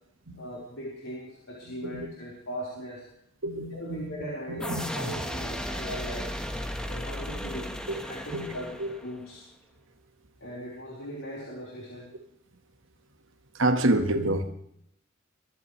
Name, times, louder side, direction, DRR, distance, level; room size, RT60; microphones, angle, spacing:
voice 1, 0.4-3.0 3.7-6.3 6.9-7.7 8.0-8.7 9.0-9.4 10.4-12.1, equal, 80° left, -5 dB, 4.8 m, -39 dB
voice 2, 1.7-2.1 3.4-5.1 7.3-7.4 7.9-8.0 8.3-8.5 8.8-8.9 13.5-14.5, right 1 dB, 75° right, 6 dB, 1.7 m, -28 dB
sound 1, 4.6-9.3, equal, 5° left, 1.5 m, -35 dB
24.5 x 14.5 x 3.4 m, 0.73 s
head